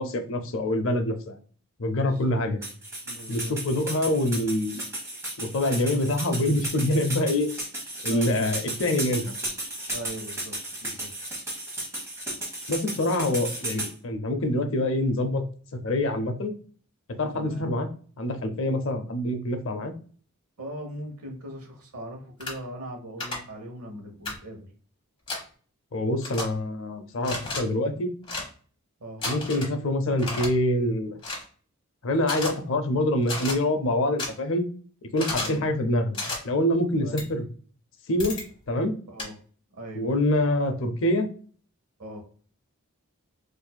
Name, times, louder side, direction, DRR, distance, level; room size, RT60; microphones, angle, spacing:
voice 1, 0.0-1.4 1.8-2.6 3.3-4.8 5.4-7.5 8.0-9.3 12.7-15.4 15.8-16.5 17.2-17.9 18.2-19.9 25.9-28.1 29.3-31.2 32.0-34.6 35.1-37.5 38.1-38.4 38.7-39.0 39.9-41.3, left 1 dB, 60° left, 7 dB, 0.5 m, -25 dB
voice 2, 2.0-2.4 3.0-3.5 8.1-8.5 9.9-11.1 17.3-17.7 20.6-24.7 29.0-29.2 35.4-35.6 37.0-37.3 39.1-39.4 39.7-40.1 42.0-42.2, equal, 75° right, 3 dB, 0.9 m, -40 dB
sound 1, 2.6-13.9, right 1 dB, 15° right, 1.1 m, -34 dB
sound 2, 22.4-22.5 23.2-23.4 24.2-24.4 25.3-25.4 26.2-26.4 27.2-27.6 28.2-28.5 29.2-29.7 30.2-30.5 31.2-31.4 32.2-32.5 33.2-33.5 34.2-34.3 35.2-35.6 36.1-36.4 37.2-37.3 38.2-38.4 39.2-39.3, left 2 dB, 25° left, 1.0 m, -32 dB
4.1 x 2.6 x 2.2 m, 0.43 s
head